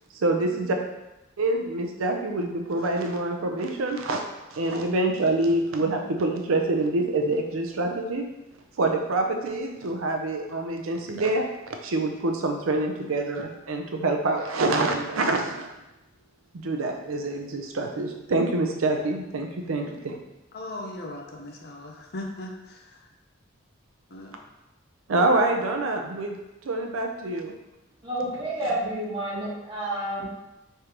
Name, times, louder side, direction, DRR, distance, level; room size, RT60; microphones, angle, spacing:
voice 1, 0.1-0.8 1.4-4.2 4.5-8.3 8.8-15.7 16.6-20.2 25.1-27.5, right 2 dB, 80° right, 3 dB, 0.5 m, -26 dB
voice 2, 20.5-22.8 24.1-24.4, left 1 dB, 50° left, 1 dB, 0.6 m, -38 dB
voice 3, 28.0-30.4, right 1 dB, 25° right, -7 dB, 1.4 m, -30 dB
5.0 x 3.3 x 2.9 m, 0.96 s
head